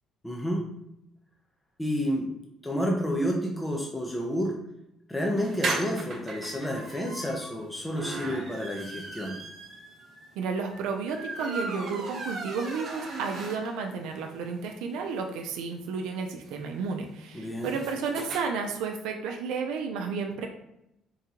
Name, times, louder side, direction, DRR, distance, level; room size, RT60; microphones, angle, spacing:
voice 1, 0.2-0.7 1.8-2.3 2.6-4.6 5.1-9.4 17.3-17.7, equal, 10° left, -1 dB, 0.6 m, -30 dB
sound 1, 5.4-14.0 14.3-14.4 14.7-14.8 15.0-18.4, right 3 dB, 55° right, 1.1 m, -37 dB
voice 2, 10.4-20.5, right 5 dB, 90° right, 3 dB, 0.5 m, -32 dB
3.9 x 3.6 x 2.9 m, 0.82 s
cardioid pair, 125°, 0 cm